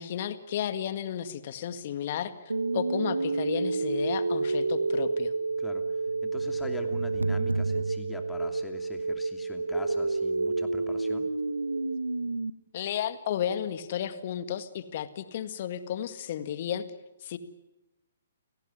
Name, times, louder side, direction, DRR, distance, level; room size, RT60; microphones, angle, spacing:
voice 1, 0.0-2.3 2.7-5.3 12.7-16.8 17.2-17.4, left 10 dB, 45° left, 10 dB, 2.0 m, -33 dB
sound 1, 2.5-12.5, right 3 dB, 80° right, 1.0 m, -29 dB
voice 2, 6.2-11.3, left 3 dB, 10° left, 5 dB, 2.8 m, -44 dB
30.0 x 18.0 x 9.7 m, 1.0 s
figure-of-eight pair, 125°, 0 cm